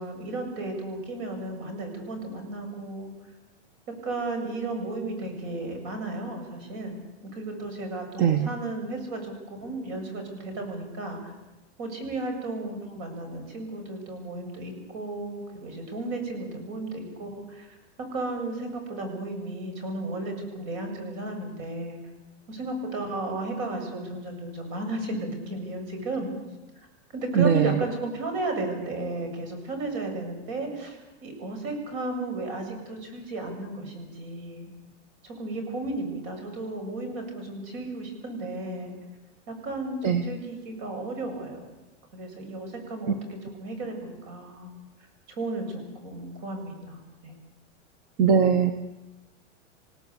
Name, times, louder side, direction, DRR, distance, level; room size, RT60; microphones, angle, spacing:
voice 1, 0.0-3.1 4.0-9.3 9.6-11.3 11.8-17.7 18.1-22.0 22.5-26.3 27.1-34.7 35.2-38.9 39.5-41.7 42.1-44.7 45.4-47.4, right 2 dB, 45° right, 5 dB, 7.9 m, -34 dB
voice 2, 8.2-8.5 27.3-27.8 40.0-40.2 48.2-48.7, right 7 dB, 25° right, 9 dB, 1.2 m, -20 dB
28.0 x 17.5 x 8.4 m, 1.0 s
supercardioid pair, 160°, 36 cm